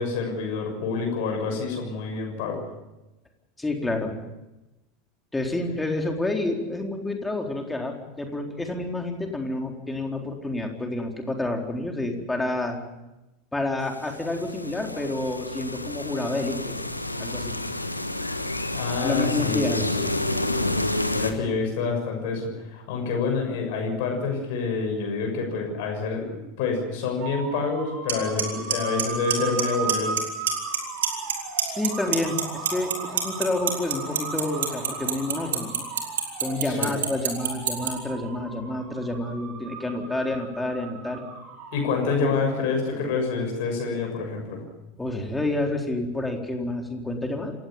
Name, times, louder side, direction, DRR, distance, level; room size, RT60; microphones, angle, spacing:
voice 1, 0.0-2.6 18.7-20.6 21.1-30.2 36.7-36.9 41.7-44.6, left 4 dB, 55° left, 2 dB, 6.7 m, -27 dB
voice 2, 3.6-4.1 5.3-12.8 13.5-16.7 17.2-17.6 19.0-19.8 31.6-35.8 36.4-41.2 42.2-42.3 45.0-47.5, left 2 dB, 10° left, 2 dB, 4.0 m, -29 dB
sound 1, 13.9-21.3, left 1 dB, 85° left, 1.5 m, -29 dB
sound 2, 27.2-42.7, right 5 dB, 45° right, 5.7 m, -37 dB
Clock, 28.1-28.2 28.4-28.7 29.0-29.6 29.9-30.2 30.5-31.3 31.6-37.9, right 10 dB, 70° right, 3.7 m, -23 dB
27.5 x 17.0 x 7.3 m, 0.98 s
figure-of-eight pair, 80°, 0 cm